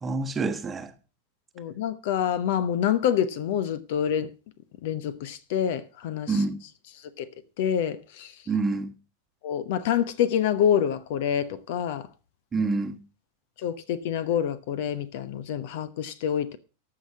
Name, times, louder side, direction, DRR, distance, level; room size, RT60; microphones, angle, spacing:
voice 1, 0.0-0.9 6.3-6.6 8.5-8.9 12.5-13.0, right 3 dB, 15° right, 1.2 m, -27 dB
voice 2, 1.6-4.3 4.8-6.4 7.2-7.3 7.6-8.3 9.4-12.1 13.6-16.6, left 9 dB, 50° left, 0.9 m, -27 dB
14.5 x 6.0 x 6.0 m
figure-of-eight pair, 90°, 0 cm